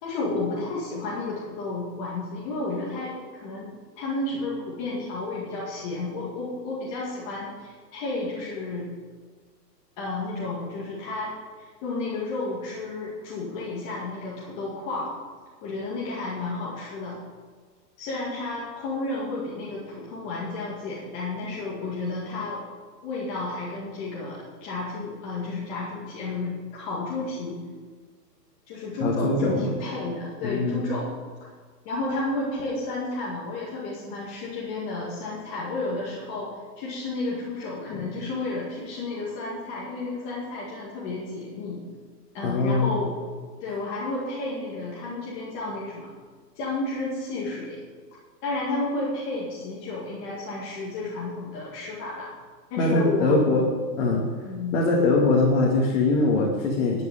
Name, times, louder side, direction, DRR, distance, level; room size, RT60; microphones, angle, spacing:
voice 1, 0.0-8.9 10.0-15.1 15.6-17.2 18.0-22.6 23.0-27.6 28.7-31.1 31.8-41.8 42.3-43.1 43.6-46.1 46.6-47.8 48.4-52.3 52.7-53.4 54.4-55.4, left 2 dB, 25° left, -6 dB, 2.1 m, -32 dB
voice 2, 29.0-29.6 30.4-30.8 42.4-43.0 52.8-53.7 54.0-54.3 54.7-57.0, left 3 dB, 45° left, -3 dB, 2.3 m, -22 dB
11.5 x 6.9 x 9.2 m, 1.5 s
hypercardioid pair, 165°, 50 cm